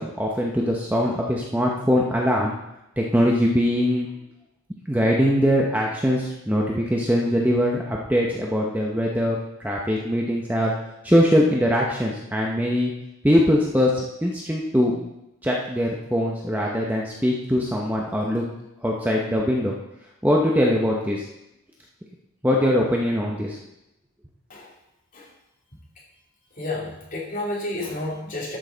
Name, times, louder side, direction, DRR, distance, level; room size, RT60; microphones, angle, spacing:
voice 1, 0.0-2.5 3.0-4.1 4.9-9.4 9.6-10.7 11.0-12.9 13.2-13.9 14.2-15.1 15.4-18.4 18.8-19.7 20.2-21.2 22.4-23.6, equal, 10° right, -2 dB, 0.8 m, -22 dB
voice 2, 26.6-28.6, left 2 dB, 35° left, -5 dB, 2.8 m, -30 dB
12.0 x 6.5 x 3.9 m, 0.89 s
head